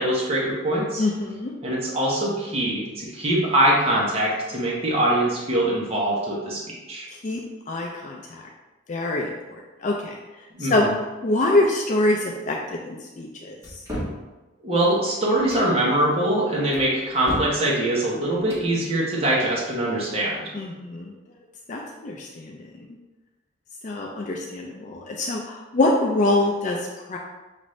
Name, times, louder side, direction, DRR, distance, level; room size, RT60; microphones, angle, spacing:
voice 1, 0.0-1.0 1.6-6.6 6.9-7.1 10.6-10.9 14.6-20.5, right 1 dB, 30° right, -5 dB, 0.9 m, -23 dB
voice 2, 1.0-1.5 7.1-7.4 7.7-8.4 8.9-10.2 10.6-10.9 11.2-13.8 20.5-21.1 21.7-22.6 23.8-27.2, left 2 dB, 40° left, 0 dB, 0.4 m, -25 dB
sound 1, 13.6-14.2 15.3-15.7 16.7-17.6 18.3-18.7, equal, 15° right, 1.1 m, -32 dB
6.0 x 2.6 x 3.1 m, 1.1 s
head